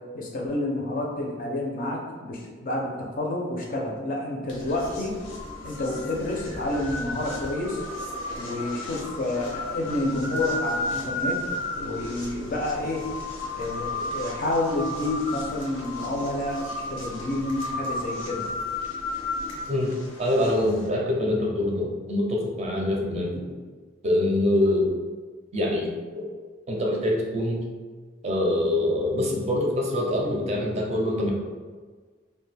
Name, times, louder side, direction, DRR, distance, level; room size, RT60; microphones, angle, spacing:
voice 1, 0.1-5.2 5.6-7.8 8.4-11.4 11.7-13.1 13.5-18.5, left 2 dB, 45° left, -1 dB, 0.5 m, -29 dB
sound 1, 4.5-20.9, left 2 dB, 85° left, 0.7 m, -34 dB
voice 2, 20.2-23.4 24.0-24.9 25.5-26.3 26.7-27.6 28.2-31.3, left 1 dB, 35° right, -1 dB, 0.4 m, -24 dB
2.5 x 2.2 x 3.2 m, 1.5 s
head